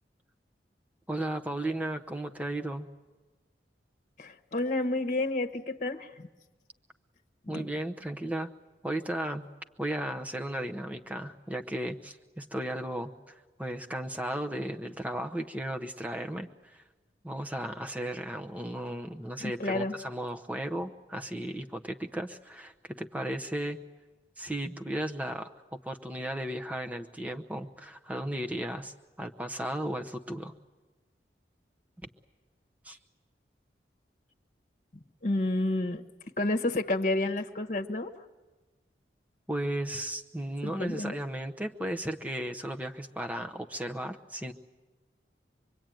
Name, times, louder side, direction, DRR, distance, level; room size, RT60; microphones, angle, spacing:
voice 1, 1.1-2.9 7.5-8.5 8.8-9.5 9.8-16.8 17.2-23.8 24.4-30.5 32.8-33.0 39.5-44.5, right 1 dB, 10° right, 5 dB, 0.8 m, -35 dB
voice 2, 4.2-6.3 7.5-7.7 19.4-19.9 35.2-36.0 36.4-38.1 40.6-41.2, left 2 dB, 40° left, 6 dB, 1.2 m, -30 dB
25.5 x 22.5 x 9.1 m, 1.2 s
head